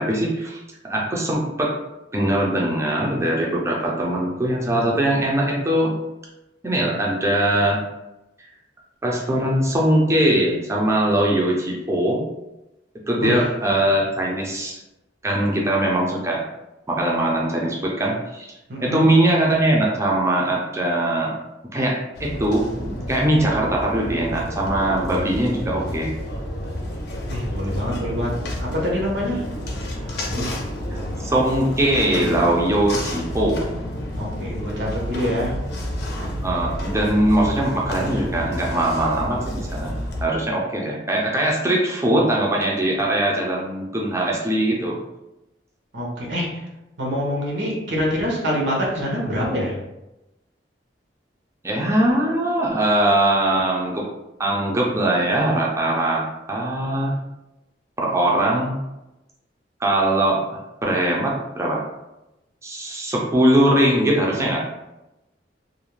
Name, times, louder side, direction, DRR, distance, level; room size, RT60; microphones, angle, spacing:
voice 1, 0.0-1.7 2.1-5.9 6.6-7.8 9.0-12.2 13.1-14.8 15.2-16.4 16.9-18.5 18.8-21.3 21.7-26.1 30.9-33.6 36.4-40.0 40.2-45.0 51.6-54.0 54.4-57.1 58.0-58.8 59.8-61.8 62.6-64.6, right 1 dB, 15° right, -3 dB, 0.4 m, -21 dB
voice 2, 18.7-19.1 27.3-29.4 29.9-30.5 34.1-35.5 45.9-46.6 47.0-49.7, equal, 85° right, -3 dB, 0.8 m, -25 dB
sound 1, 22.1-40.3, left 1 dB, 65° left, 0.5 m, -30 dB
2.4 x 2.1 x 3.0 m, 0.95 s
head